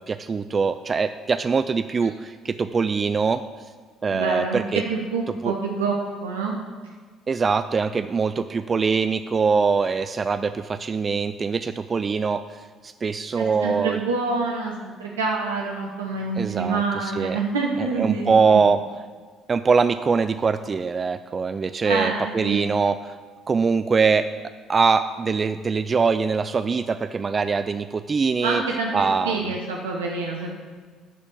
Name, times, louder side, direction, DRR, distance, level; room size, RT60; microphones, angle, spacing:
voice 1, 0.0-3.4 4.0-4.8 5.4-5.5 7.3-14.0 16.4-17.4 17.8-18.8 19.5-23.2 23.5-24.3 24.7-28.6 28.9-29.5, right 5 dB, 35° right, 11 dB, 0.3 m, -23 dB
voice 2, 4.1-4.6 4.9-6.0 6.2-6.5 13.4-18.6 21.8-22.7 28.4-28.9 29.2-30.5, right 4 dB, 80° right, -1 dB, 0.8 m, -27 dB
11.0 x 4.3 x 7.0 m, 1.5 s
figure-of-eight pair, 50°, 0 cm